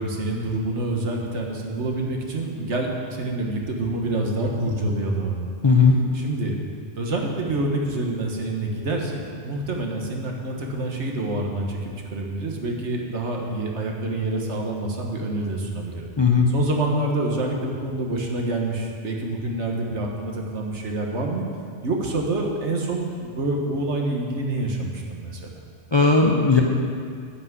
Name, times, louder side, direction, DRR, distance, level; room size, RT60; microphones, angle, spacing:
voice 1, 0.0-5.5 6.1-6.6 6.9-16.1 16.5-21.5 21.8-25.5, right 2 dB, 70° right, 0 dB, 1.6 m, -27 dB
voice 2, 5.6-5.9 16.2-16.5 25.9-26.6, left 4 dB, 30° left, 0 dB, 0.6 m, -16 dB
9.9 x 5.9 x 8.1 m, 2.2 s
omnidirectional pair, 1.2 m